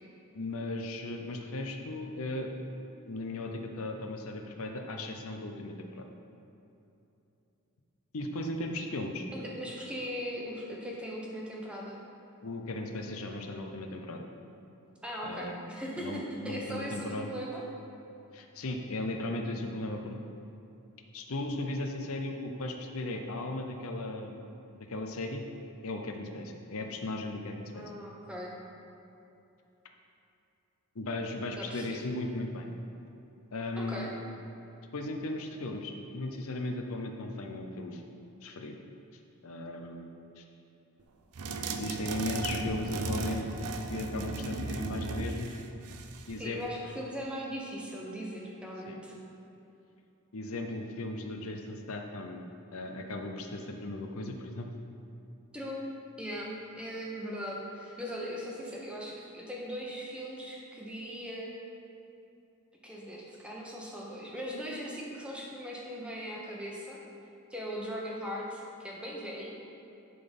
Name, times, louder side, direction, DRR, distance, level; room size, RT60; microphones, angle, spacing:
voice 1, 0.3-2.5 3.1-6.1 8.1-9.3 12.4-14.3 15.2-15.6 16.0-17.4 18.3-20.2 21.1-24.4 24.9-25.4 25.8-27.8 31.0-32.7 33.5-34.1 34.9-38.0 38.4-38.8 39.4-40.4 41.7-43.5 43.9-45.6 46.3-46.6 48.9-49.0 50.3-52.4 52.7-54.7, left 2 dB, 65° left, 3 dB, 0.7 m, -37 dB
voice 2, 9.3-12.0 15.0-17.6 27.7-28.5 31.6-32.0 33.8-34.1 46.4-49.1 55.5-55.8 56.2-61.5 62.8-67.0 67.5-69.6, equal, 5° right, -4 dB, 1.1 m, -39 dB
sound 1, 41.4-46.4, right 3 dB, 80° right, 0.6 m, -36 dB
11.0 x 3.9 x 5.3 m, 2.8 s
head